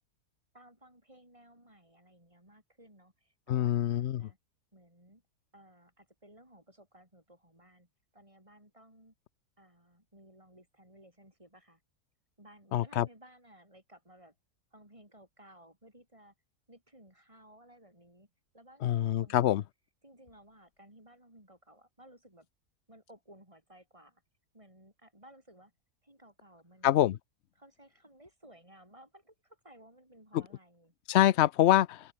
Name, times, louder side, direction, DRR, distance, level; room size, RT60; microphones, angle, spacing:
voice 1, 0.5-4.4 4.7-5.2 5.5-9.1 9.6-11.8 12.4-14.3 14.7-16.3 16.7-19.7 20.0-22.5 22.9-24.2 24.5-25.7 26.0-27.1 27.6-30.9, right 1 dB, 20° right, 6.9 m, -58 dB
voice 2, 3.5-4.3 12.7-13.1 18.8-19.6 26.8-27.2 31.1-32.1, left 12 dB, 60° left, 0.7 m, -25 dB
omnidirectional pair, 1.6 m